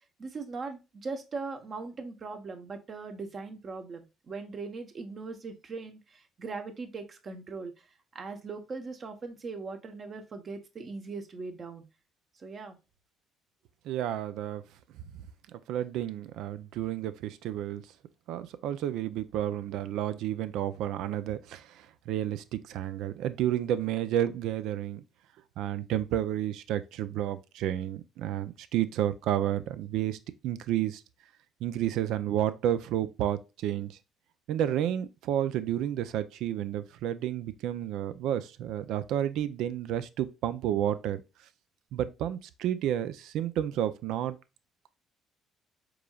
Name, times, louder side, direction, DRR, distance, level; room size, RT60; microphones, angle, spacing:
voice 1, 0.2-7.7 8.1-11.8 12.4-12.8, right 4 dB, 45° right, 1.0 m, -40 dB
voice 2, 13.9-14.6 15.5-17.8 18.3-25.0 25.6-30.2 30.4-31.0 31.6-34.0 34.5-41.2 41.9-44.4, right 11 dB, 75° right, 0.4 m, -31 dB
4.8 x 3.7 x 2.3 m
supercardioid pair, 75°, 0 cm